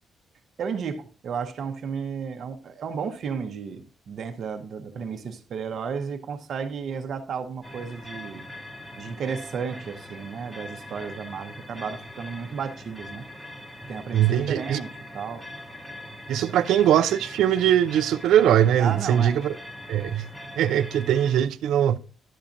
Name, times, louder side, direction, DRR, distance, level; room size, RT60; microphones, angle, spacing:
voice 1, 0.6-8.4 9.0-13.3 13.9-15.5 18.8-19.4, right 6 dB, 55° right, 0.8 m, -33 dB
sound 1, 7.6-21.4, left 1 dB, 5° left, 0.8 m, -42 dB
voice 2, 14.1-14.8 16.3-19.5 19.9-20.3 20.6-22.0, right 10 dB, 90° right, 0.4 m, -21 dB
11.0 x 7.1 x 2.6 m
cardioid pair, 155°, 0 cm